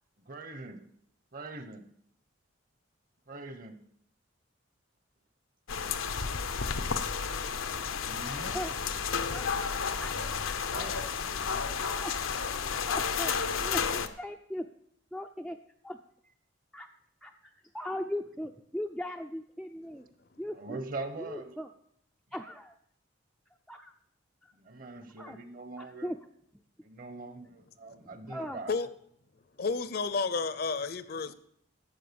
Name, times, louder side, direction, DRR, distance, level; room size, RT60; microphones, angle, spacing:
voice 1, 0.2-0.8 1.3-1.8 3.3-3.8 8.0-8.5 10.7-11.0 20.5-21.5 24.5-26.1 26.8-28.8, right 3 dB, 45° right, 1.1 m, -42 dB
sound 1, 5.7-14.1, left 6 dB, 90° left, 0.8 m, -32 dB
voice 2, 9.3-10.5 11.9-12.2 12.9-13.3 13.6-14.7 15.1-15.6 15.8-16.0 16.2-16.3 16.7-16.9 17.2-20.1 20.4-20.8 21.2-21.7 22.3-22.7 23.7-23.9 24.4-24.5 25.2-25.4 25.8-26.2 28.3-28.6, left 1 dB, ahead, 0.4 m, -39 dB
voice 3, 29.6-31.3, left 4 dB, 50° left, 0.6 m, -31 dB
12.5 x 7.7 x 7.0 m
head